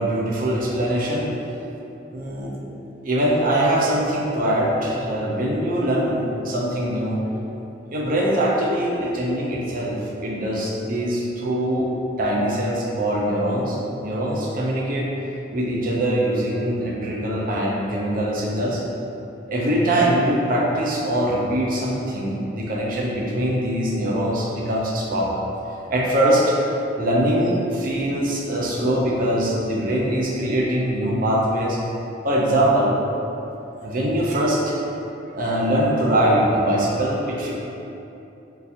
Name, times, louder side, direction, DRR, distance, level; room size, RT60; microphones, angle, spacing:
voice 1, 0.0-1.3 2.1-2.5 3.0-7.2 7.9-11.9 12.2-15.1 15.5-18.8 19.5-25.4 25.9-26.6 27.0-31.8 32.2-32.9 33.8-34.8 35.3-37.5, right 1 dB, 50° right, -4 dB, 0.6 m, -22 dB
3.7 x 2.6 x 2.8 m, 2.9 s
head